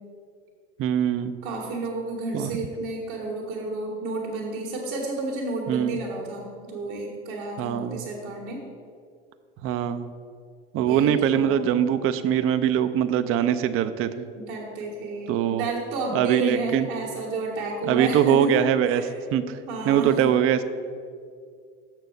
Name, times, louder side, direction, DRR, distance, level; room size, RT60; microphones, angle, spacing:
voice 1, 0.8-1.3 2.3-2.5 5.7-6.0 7.6-8.1 9.6-10.1 10.7-14.3 15.3-15.6 16.1-16.9 17.9-19.0 19.3-19.6 19.9-20.6, right 9 dB, 40° right, 11 dB, 0.5 m, -22 dB
voice 2, 1.4-8.6 10.8-11.7 14.4-19.1 19.7-20.3, right 2 dB, 60° right, -2 dB, 1.7 m, -31 dB
6.9 x 4.5 x 6.5 m, 2.2 s
hypercardioid pair, 75°, 33 cm